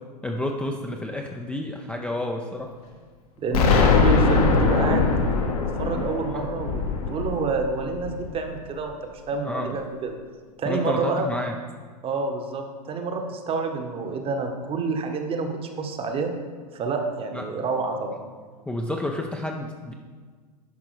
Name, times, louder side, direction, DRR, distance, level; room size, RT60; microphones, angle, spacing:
voice 1, 0.2-2.7 6.3-6.5 9.4-9.8 10.7-11.5 17.3-17.4 18.7-19.9, left 1 dB, 5° left, 1 dB, 0.5 m, -30 dB
voice 2, 3.4-5.1 5.5-10.2 10.6-11.3 12.0-16.3 16.7-18.2, right 4 dB, 25° right, 5 dB, 1.0 m, -28 dB
Explosion, 3.5-8.4, left 4 dB, 65° left, 1.3 m, -21 dB
10.5 x 5.6 x 3.2 m, 1.5 s
hypercardioid pair, 95°, 20 cm